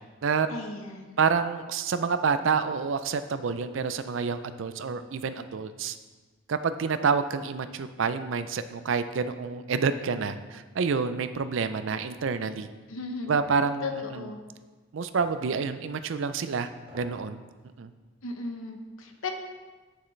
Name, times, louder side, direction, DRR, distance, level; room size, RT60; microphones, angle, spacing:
voice 1, 0.5-1.2 12.9-13.4 13.8-14.4 18.2-19.3, left 3 dB, 75° left, 4 dB, 1.0 m, -36 dB
voice 2, 1.2-6.0 6.5-12.7 13.3-13.8 14.1-14.3 14.9-17.4 17.8-17.9, right 5 dB, 60° right, 11 dB, 0.4 m, -28 dB
sound 1, 13.4-13.6 15.2-15.4 16.8-17.2 17.6-17.7, equal, 30° right, 2.7 m, -49 dB
8.9 x 7.1 x 3.2 m, 1.3 s
head